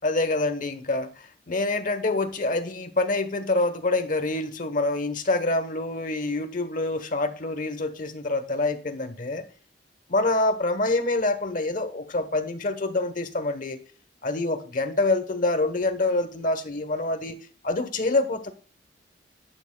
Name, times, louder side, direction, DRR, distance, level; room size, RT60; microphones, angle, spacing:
voice 1, 0.0-9.4 10.1-13.8 14.2-17.4 17.6-18.5, left 2 dB, 50° left, 1.0 m, -26 dB
12.5 x 8.8 x 2.2 m
head